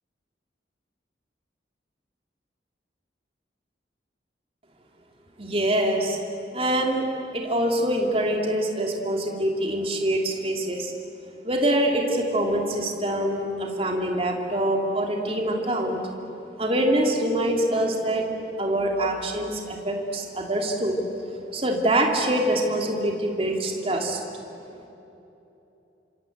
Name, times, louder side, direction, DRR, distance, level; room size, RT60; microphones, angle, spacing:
voice 1, 5.4-6.2 6.5-7.1 7.3-10.9 11.4-16.0 16.6-18.2 18.6-21.0 21.5-24.2, right 1 dB, 30° right, 1 dB, 3.0 m, -24 dB
27.5 x 26.0 x 8.1 m, 3.0 s
head